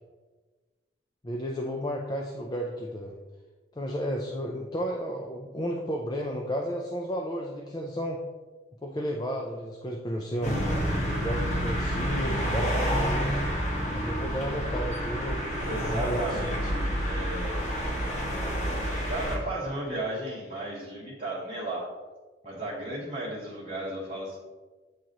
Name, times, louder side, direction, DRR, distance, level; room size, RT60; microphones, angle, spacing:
voice 1, 1.2-3.2 3.8-8.2 8.8-10.7 11.1-13.4 13.9-15.4 15.8-16.5, equal, 20° left, 0 dB, 0.4 m, -32 dB
sound 1, 10.4-19.4, equal, 40° left, 1.5 m, -29 dB
voice 2, 15.6-17.7 19.1-21.9 22.4-24.4, right 1 dB, 35° right, -8 dB, 1.2 m, -34 dB
8.5 x 3.0 x 3.8 m, 1.3 s
head